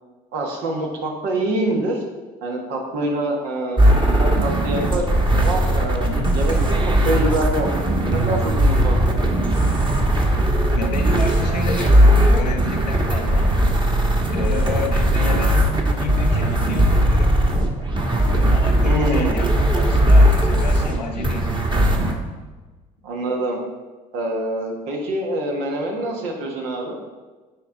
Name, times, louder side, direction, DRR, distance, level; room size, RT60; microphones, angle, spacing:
voice 1, 0.3-2.0 2.4-6.1 6.3-7.7 8.1-9.2 14.5-14.9 18.8-19.4 23.0-23.6 24.1-27.0, right 1 dB, 70° right, 0 dB, 1.5 m, -25 dB
sound 1, 3.8-22.1, right 1 dB, 25° right, 1.3 m, -18 dB
voice 2, 6.0-6.4 10.7-13.5 14.3-17.3 18.3-21.5, left 4 dB, 90° left, 3 dB, 0.8 m, -30 dB
8.3 x 4.8 x 3.8 m, 1.3 s
hypercardioid pair, 60°, 21 cm